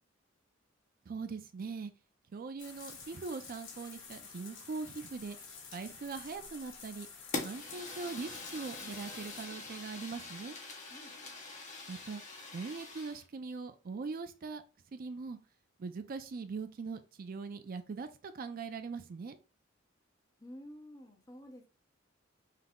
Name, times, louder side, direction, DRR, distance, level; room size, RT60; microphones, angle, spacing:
voice 1, 1.1-1.9 2.3-5.4 5.7-7.1 7.4-10.6 11.9-14.6 14.9-15.4 15.8-19.4, right 4 dB, 45° right, 0.4 m, -41 dB
sound 1, 2.6-9.5, left 5 dB, 70° left, 1.3 m, -50 dB
Fire, 7.3-13.2, left 3 dB, 40° left, 1.1 m, -44 dB
voice 2, 20.4-21.7, equal, 20° left, 0.7 m, -50 dB
5.7 x 2.0 x 3.5 m
head